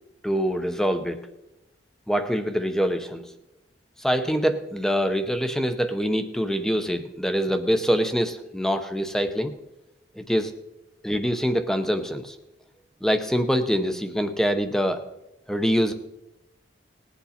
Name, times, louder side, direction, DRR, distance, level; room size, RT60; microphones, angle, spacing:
voice 1, 0.2-1.3 2.1-3.3 4.0-9.5 10.1-10.5 11.0-12.4 13.0-15.0 15.5-15.9, equal, 5° left, 8 dB, 0.7 m, -24 dB
20.0 x 8.4 x 4.3 m, 0.94 s
head